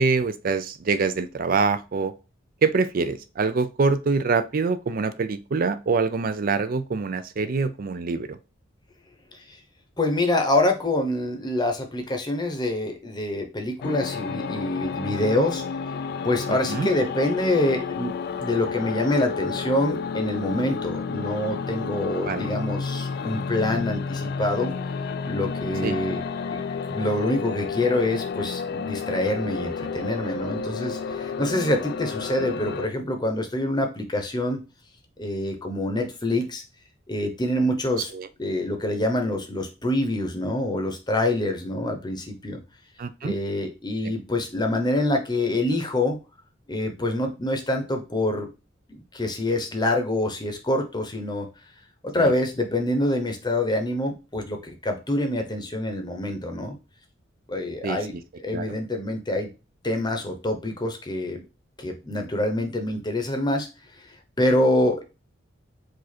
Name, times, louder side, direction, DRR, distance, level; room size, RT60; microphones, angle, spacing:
voice 1, 0.0-2.1 2.6-8.4 16.5-16.9 22.2-22.5 25.8-26.0 38.1-38.3 43.0-43.3 52.2-52.3 57.8-58.2 58.5-58.6, right 4 dB, 50° right, 13 dB, 0.4 m, -25 dB
voice 2, 10.0-15.6 16.2-24.7 25.2-26.2 26.5-26.6 26.9-34.6 35.2-36.6 37.1-38.1 38.4-42.6 43.2-46.2 46.7-48.5 48.9-51.5 52.1-56.8 57.5-59.5 59.8-61.4 61.8-63.7 64.0-65.0, left 1 dB, 25° left, 4 dB, 0.8 m, -26 dB
sound 1, 13.8-32.9, left 5 dB, 55° left, 0.3 m, -31 dB
4.9 x 2.5 x 4.2 m, 0.30 s
head